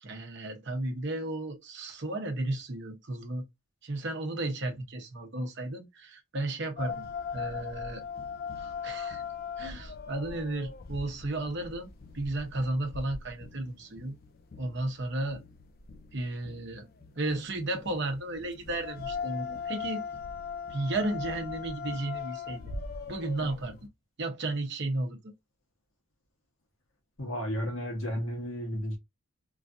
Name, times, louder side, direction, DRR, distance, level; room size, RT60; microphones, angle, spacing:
voice 1, 0.0-3.5 3.8-7.1 7.3-8.0 8.6-9.2 9.6-11.9 12.1-14.2 14.6-15.4 16.1-20.0 20.7-22.6 23.1-23.8 24.2-25.3, right 2 dB, 55° right, 0.8 m, -34 dB
sound 1, 6.8-23.9, left 6 dB, 45° left, 0.4 m, -40 dB
voice 2, 27.2-29.0, equal, 65° left, 1.2 m, -33 dB
3.1 x 2.5 x 2.5 m
head